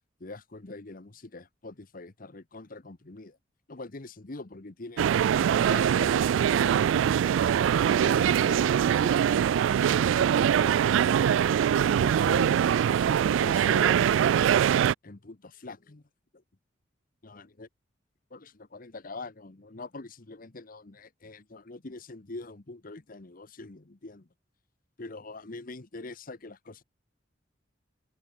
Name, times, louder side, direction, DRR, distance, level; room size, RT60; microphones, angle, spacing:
voice 1, 0.2-3.4 3.7-5.1 5.5-9.4 9.8-11.3 11.7-14.2 15.0-16.0 16.3-16.4 17.2-17.7 18.3-24.3 25.0-26.8, left 3 dB, 45° left, 1.1 m, -44 dB
sound 1, 5.0-14.9, right 9 dB, 85° right, 0.3 m, -23 dB
open air
head